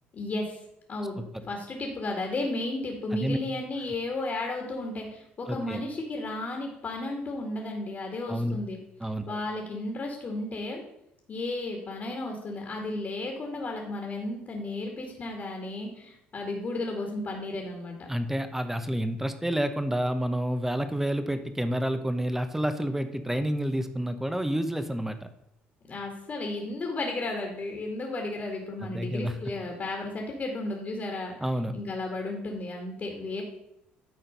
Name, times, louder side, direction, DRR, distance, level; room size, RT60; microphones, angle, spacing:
voice 1, 0.1-0.6 0.9-8.8 9.3-10.8 11.3-18.1 25.9-33.4, left 2 dB, 45° left, 1 dB, 2.2 m, -34 dB
voice 2, 5.5-5.8 8.3-8.6 9.0-9.4 18.1-25.2 28.8-29.3 31.4-31.7, equal, 5° right, 9 dB, 1.0 m, -29 dB
11.0 x 4.4 x 5.3 m, 0.79 s
supercardioid pair, 65°, 5 cm